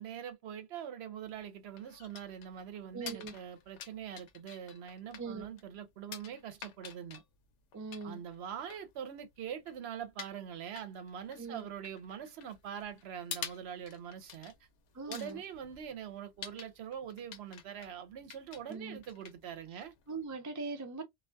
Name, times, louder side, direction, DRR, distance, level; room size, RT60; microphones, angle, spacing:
voice 1, 0.0-7.2 8.0-14.7 15.1-19.9, right 9 dB, 70° right, 0.8 m, -43 dB
sound 1, 1.2-20.2, left 8 dB, 85° left, 0.9 m, -50 dB
voice 2, 2.9-3.3 5.2-5.5 7.7-8.2 11.4-11.7 14.9-15.4 18.7-19.0 19.7-19.8 20.1-21.0, right 4 dB, 30° right, 0.3 m, -41 dB
2.3 x 2.2 x 2.5 m
omnidirectional pair, 1.2 m